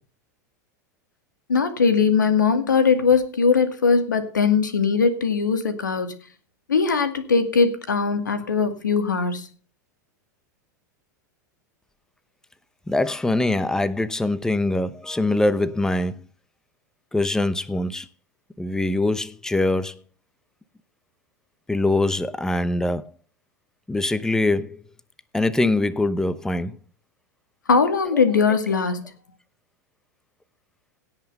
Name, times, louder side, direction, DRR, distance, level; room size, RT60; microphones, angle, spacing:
voice 1, 1.5-6.1 6.7-9.5 27.7-29.0, left 5 dB, 90° left, 2.2 m, -20 dB
voice 2, 12.9-16.2 17.1-18.1 18.6-20.0 21.7-23.1 23.9-24.8 25.3-26.8, left 2 dB, 5° left, 0.8 m, -23 dB
17.5 x 5.8 x 5.4 m
hypercardioid pair, 95°, 10 cm